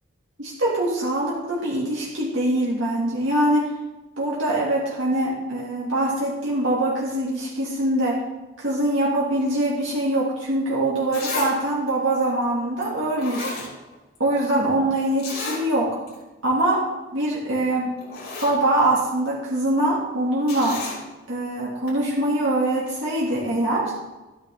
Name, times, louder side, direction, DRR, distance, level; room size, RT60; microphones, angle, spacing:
voice 1, 0.4-3.7 4.2-8.2 8.6-13.5 14.2-16.0 16.4-16.8 17.1-17.9 18.4-20.8 21.3-23.9, right 1 dB, 80° right, -5 dB, 2.3 m, -23 dB
Zipper (clothing), 10.6-10.7 11.1-11.5 11.9-12.0 12.8-12.9 13.2-14.2 14.4-14.5 15.2-15.6 16.1-16.2 16.5-16.7 17.6-17.7 18.0-18.6 20.5-21.0 21.9-22.0, left 3 dB, 50° left, 4.0 m, -32 dB
13.0 x 9.6 x 3.5 m, 1.1 s
head